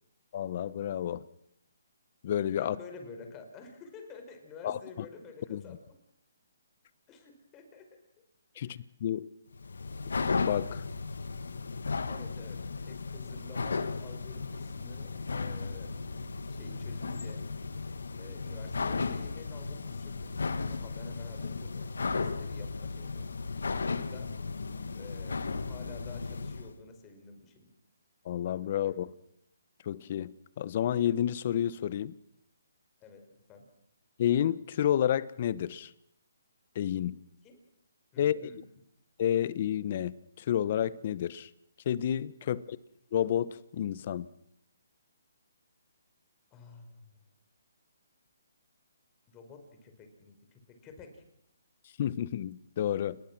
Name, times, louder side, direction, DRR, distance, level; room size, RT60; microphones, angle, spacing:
voice 1, 0.3-1.2 2.2-2.8 4.6-4.8 5.5-5.6 8.6-9.3 10.3-10.8 28.2-29.1 29.8-32.1 34.2-35.9 36.7-37.2 38.2-38.5 39.2-41.5 41.9-42.8 43.1-44.3 52.0-53.2, left 10 dB, 40° left, 18 dB, 1.0 m, -30 dB
voice 2, 2.6-5.8 7.1-7.9 8.5-8.8 12.1-17.4 18.1-20.1 20.7-21.9 22.1-23.3 23.8-24.3 25.0-27.7 28.9-29.0 33.0-33.2 33.5-33.6 37.4-37.6 38.1-38.6 42.4-42.6 46.5-47.1 49.3-51.2, left 4 dB, 20° left, 5 dB, 5.3 m, -50 dB
sound 1, 9.5-26.7, left 4 dB, 80° left, 2.0 m, -35 dB
30.0 x 20.5 x 6.2 m, 0.74 s
hypercardioid pair, 155°, 0 cm